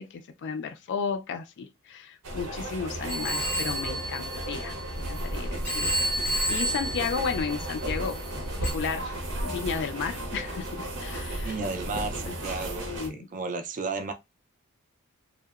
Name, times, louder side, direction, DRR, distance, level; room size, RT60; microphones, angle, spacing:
voice 1, 0.0-4.8 5.1-5.9 6.5-8.2 8.6-9.1 9.4-11.6 12.2-12.4 12.8-13.3, left 5 dB, 50° left, 0.3 m, -33 dB
sound 1, 2.2-13.1, right 1 dB, 85° right, 0.7 m, -34 dB
Telephone, 3.1-5.2 5.6-8.0 8.6-8.7, right 1 dB, 5° left, 0.6 m, -31 dB
voice 2, 11.4-14.1, right 4 dB, 35° right, 0.3 m, -33 dB
2.8 x 2.0 x 2.3 m
head